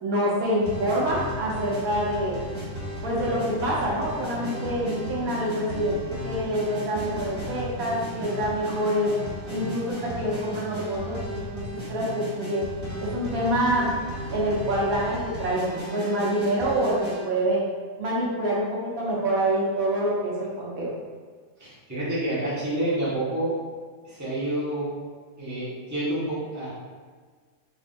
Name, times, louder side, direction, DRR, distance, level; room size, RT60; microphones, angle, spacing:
voice 1, 0.0-2.4 3.0-9.1 9.5-12.7 13.0-13.9 14.3-17.0 17.2-17.6 18.0-20.9, right 1 dB, 85° right, -5 dB, 1.4 m, -26 dB
sound 1, 0.6-17.2, equal, 65° right, 1.8 m, -35 dB
voice 2, 21.6-23.5 24.0-24.9 25.4-26.7, right 1 dB, 15° right, -11 dB, 1.4 m, -28 dB
3.8 x 3.7 x 2.6 m, 1.5 s
omnidirectional pair, 1.5 m